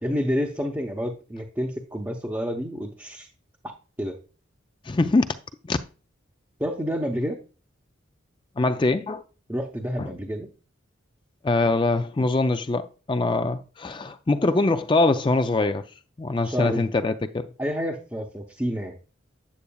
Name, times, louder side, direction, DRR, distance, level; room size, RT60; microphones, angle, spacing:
voice 1, 0.0-3.3 3.6-3.7 4.0-4.2 6.6-7.4 9.5-10.5 16.4-16.9 17.6-19.0, equal, 10° right, 0.8 m, -29 dB
voice 2, 4.9-5.3 5.7-5.8 8.6-9.2 10.0-10.1 11.4-15.8 16.2-17.5, left 2 dB, 25° left, 0.4 m, -23 dB
8.5 x 8.0 x 2.3 m
head